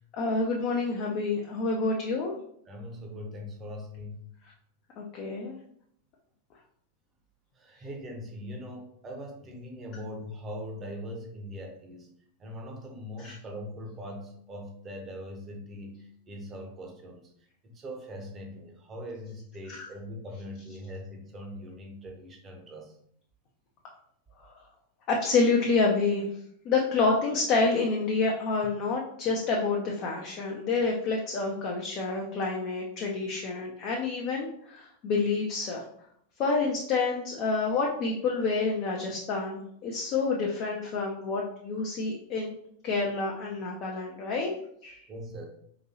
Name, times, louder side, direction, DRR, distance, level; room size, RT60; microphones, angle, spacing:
voice 1, 0.1-2.3 5.0-5.6 13.2-13.4 19.7-19.9 25.1-26.3 26.6-35.8 36.4-42.5 42.8-44.5 44.8-45.0, left 4 dB, 40° left, -1 dB, 0.5 m, -28 dB
voice 2, 2.7-4.3 7.6-12.1 12.4-17.2 17.7-22.9 45.1-45.5, equal, 25° right, 2 dB, 0.8 m, -41 dB
3.9 x 2.6 x 2.8 m, 0.68 s
figure-of-eight pair, 90°, 0 cm